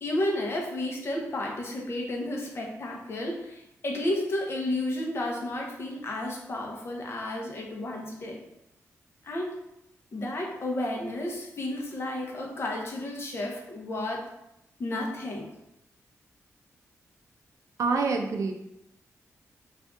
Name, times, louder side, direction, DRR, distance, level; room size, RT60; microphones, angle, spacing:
voice 1, 0.0-8.4 9.2-9.6 10.1-14.3 14.8-15.5, left 1 dB, 50° left, 0 dB, 0.7 m, -32 dB
voice 2, 17.8-18.5, right 4 dB, 70° right, 3 dB, 0.4 m, -26 dB
2.6 x 2.4 x 3.5 m, 0.83 s
cardioid pair, 95°, 6 cm